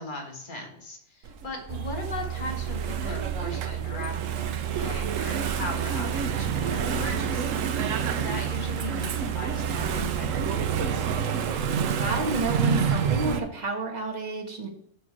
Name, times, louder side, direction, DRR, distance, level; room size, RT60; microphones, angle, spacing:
voice 1, 0.0-7.6 8.1-10.9, left 2 dB, 40° left, 1 dB, 1.7 m, -38 dB
Engine / Mechanisms, 1.2-13.4, right 7 dB, 85° right, 1.1 m, -29 dB
sound 1, 1.7-11.2, right 11 dB, 65° right, 0.4 m, -33 dB
voice 2, 12.0-14.7, right 2 dB, 35° right, 0 dB, 1.5 m, -30 dB
6.7 x 6.1 x 4.7 m, 0.69 s
omnidirectional pair, 1.3 m